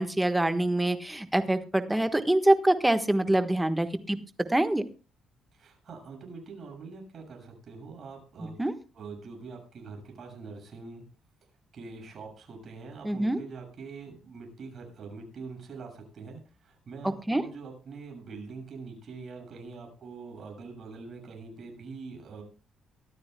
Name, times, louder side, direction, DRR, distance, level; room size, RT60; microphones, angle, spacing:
voice 1, 0.0-4.2 4.5-4.8 8.6-8.7 13.0-13.4 17.3-17.4, right 1 dB, 10° right, 8 dB, 1.4 m, -25 dB
voice 2, 5.5-8.5 8.9-11.0 11.7-22.4, right 4 dB, 45° right, 3 dB, 6.9 m, -44 dB
23.0 x 13.5 x 2.3 m, 0.33 s
cardioid pair, 110°, 0 cm